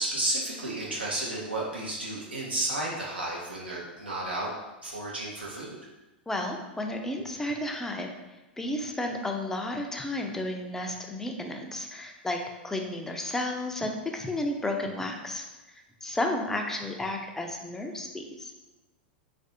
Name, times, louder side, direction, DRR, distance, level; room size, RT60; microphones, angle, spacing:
voice 1, 0.0-4.5 4.8-5.8, right 2 dB, 85° right, -5 dB, 0.5 m, -32 dB
voice 2, 6.3-8.1 8.6-12.4 12.6-18.6, left 1 dB, 10° left, 3 dB, 0.4 m, -32 dB
3.2 x 2.5 x 2.6 m, 1.1 s
figure-of-eight pair, 90°, 6 cm